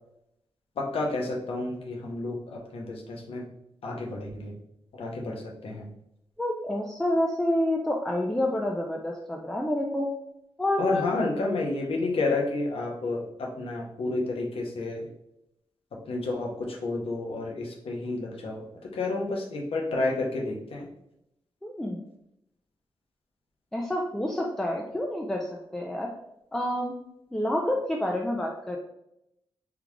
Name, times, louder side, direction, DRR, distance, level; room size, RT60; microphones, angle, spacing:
voice 1, 0.8-3.5 3.8-4.5 4.9-5.9 10.8-15.1 16.1-20.9, left 2 dB, 70° left, 0 dB, 0.8 m, -30 dB
voice 2, 6.4-10.1 10.6-11.1 21.6-22.0 23.7-26.1 26.5-27.0 27.3-28.8, left 1 dB, 5° left, -1 dB, 0.4 m, -28 dB
3.6 x 2.3 x 3.1 m, 0.81 s
wide cardioid pair, 125°, 10 cm